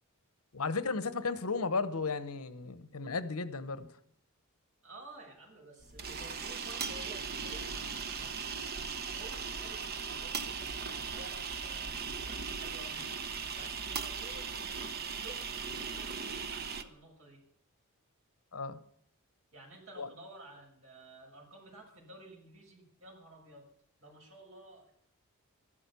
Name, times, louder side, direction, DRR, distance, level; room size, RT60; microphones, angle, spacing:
voice 1, 0.5-3.9 18.5-18.8 20.0-20.1, left 4 dB, 80° left, 1.0 m, -34 dB
voice 2, 4.8-8.8 9.1-13.1 13.5-14.6 15.0-15.5 15.8-17.4 19.5-23.7 24.0-24.9, right 1 dB, 65° right, 6.2 m, -52 dB
sound 1, 5.8-16.8, right 5 dB, 45° right, 1.0 m, -38 dB
14.0 x 12.5 x 7.0 m
head